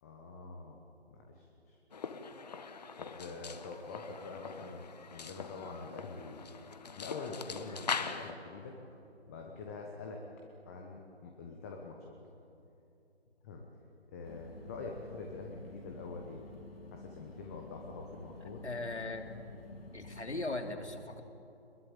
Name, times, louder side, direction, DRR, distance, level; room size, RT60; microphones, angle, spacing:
voice 1, 0.0-0.8 1.1-1.8 3.0-6.5 7.0-8.8 9.3-10.2 10.7-12.2 13.4-13.6 14.1-16.4 16.9-18.7, left 3 dB, 15° left, 1 dB, 1.1 m, -45 dB
sound 1, 1.9-8.3, left 5 dB, 35° left, 1.2 m, -42 dB
sound 2, 14.2-20.5, left 2 dB, 60° left, 3.7 m, -50 dB
voice 2, 18.4-19.3 19.9-21.2, left 2 dB, 80° left, 4 dB, 3.2 m, -39 dB
23.5 x 21.5 x 8.9 m, 2.8 s
figure-of-eight pair, 150°, 34 cm